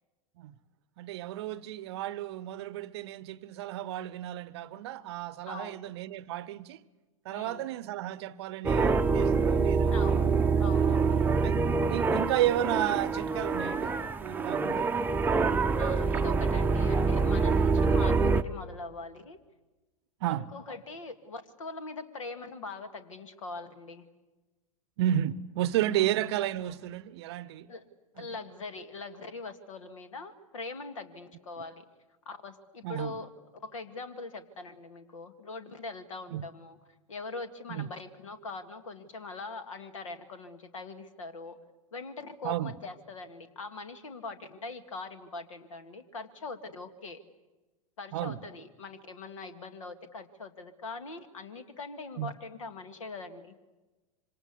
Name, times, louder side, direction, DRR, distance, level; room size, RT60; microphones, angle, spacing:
voice 1, 1.0-6.8 7.2-10.0 10.8-10.9 11.4-11.6 11.9-13.9 14.2-14.9 20.2-20.5 25.0-27.7 28.2-28.3 32.8-33.1 36.3-36.4 37.7-37.9 42.4-42.7 48.1-48.4 52.2-52.3, right 13 dB, 50° right, 0.8 m, -32 dB
voice 2, 5.5-5.9 7.3-7.7 9.9-11.3 15.8-19.4 20.3-24.1 25.9-26.1 27.7-27.9 28.2-31.8 32.3-36.8 37.1-41.6 41.9-47.2 48.0-53.6, left 3 dB, 65° left, 1.9 m, -42 dB
sound 1, 8.6-18.4, right 4 dB, 10° right, 0.8 m, -26 dB
26.0 x 25.5 x 8.3 m
figure-of-eight pair, 95°, 18 cm